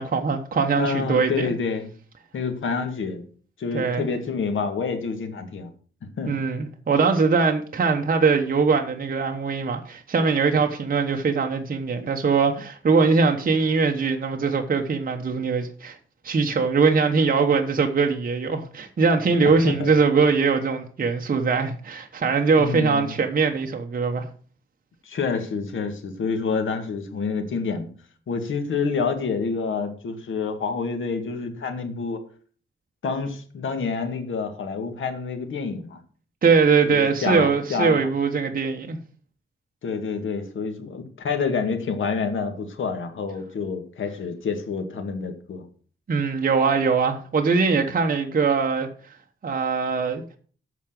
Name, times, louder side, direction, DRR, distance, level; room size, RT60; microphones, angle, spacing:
voice 1, 0.0-1.5 3.7-4.1 6.3-16.0 16.2-24.3 36.4-39.0 46.1-48.9 49.4-50.2, right 4 dB, 45° right, 1.1 m, -21 dB
voice 2, 0.7-1.9 2.3-3.2 3.6-5.7 6.0-6.5 19.4-19.9 22.6-23.1 25.0-27.9 28.3-32.2 33.0-36.0 36.9-38.0 39.8-45.6, left 5 dB, 85° left, 2.0 m, -28 dB
8.5 x 6.0 x 7.5 m
wide cardioid pair, 110°, 20 cm